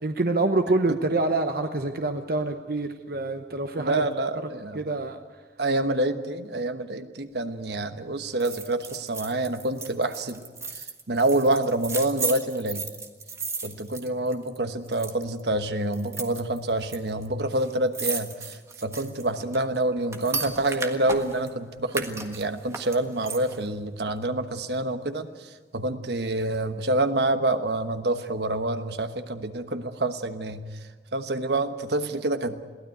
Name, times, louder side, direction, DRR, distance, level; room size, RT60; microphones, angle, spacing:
voice 1, 0.0-4.1 4.7-5.2, right 2 dB, 55° right, 6 dB, 1.0 m, -26 dB
voice 2, 3.8-4.8 5.6-10.4 10.7-12.8 13.6-30.7 31.1-32.6, right 2 dB, 75° right, 9 dB, 1.3 m, -27 dB
sound 1, 8.4-14.6 14.9-15.4 15.9-17.0 17.2-17.3 17.5-21.5 21.9-23.7 24.1-24.2, right 4 dB, 15° right, 1.5 m, -35 dB
22.0 x 16.5 x 9.2 m, 1.4 s
head